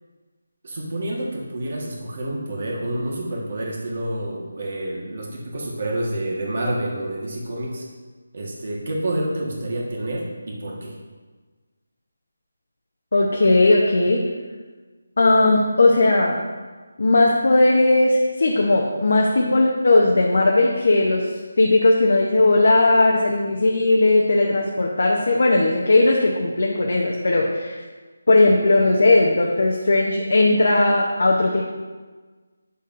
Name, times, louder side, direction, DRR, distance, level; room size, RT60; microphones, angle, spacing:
voice 1, 0.6-7.8 8.3-10.9, right 1 dB, 40° right, -2 dB, 1.6 m, -28 dB
voice 2, 13.1-14.2 15.2-16.4 17.0-21.3 21.6-27.8 28.3-31.7, left 2 dB, 55° left, -1 dB, 0.9 m, -17 dB
9.1 x 6.7 x 2.7 m, 1.4 s
figure-of-eight pair, 175°, 0 cm